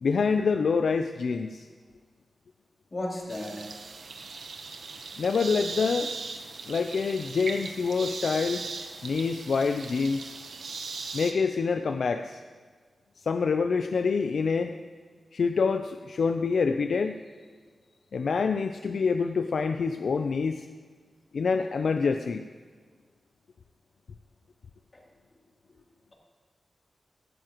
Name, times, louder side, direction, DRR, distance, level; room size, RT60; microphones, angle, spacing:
voice 1, 0.0-1.7 5.2-6.1 6.7-8.6 9.0-10.3 11.1-12.4 13.3-14.7 15.3-17.2 18.1-20.7 21.3-22.4, left 5 dB, 70° left, 7 dB, 0.4 m, -26 dB
voice 2, 2.9-3.7 24.9-25.0, left 1 dB, 35° left, -3 dB, 3.0 m, -34 dB
sound 1, 3.3-11.3, right 4 dB, 80° right, 0.9 m, -38 dB
16.5 x 12.5 x 3.0 m, 1.5 s
wide cardioid pair, 105°, 0 cm